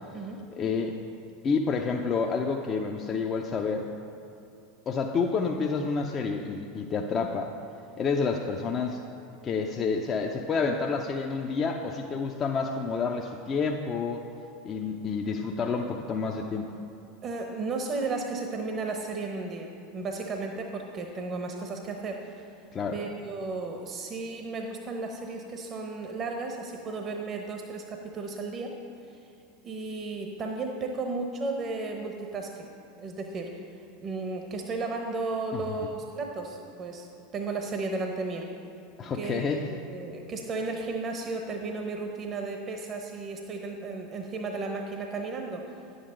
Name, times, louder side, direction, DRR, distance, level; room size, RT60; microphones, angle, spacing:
voice 1, 0.5-1.0 1.4-3.9 4.9-7.5 8.0-9.0 9.4-14.2 14.6-16.7 22.7-23.0 39.0-39.7, left 5 dB, 35° left, 1 dB, 0.6 m, -29 dB
voice 2, 17.2-22.5 22.9-28.8 29.0-29.2 29.6-32.6 33.0-33.6 34.0-37.1 37.3-38.5 39.1-45.6, right 3 dB, 40° right, 3 dB, 0.9 m, -34 dB
10.0 x 8.0 x 3.8 m, 2.7 s
hypercardioid pair, 85°, 0 cm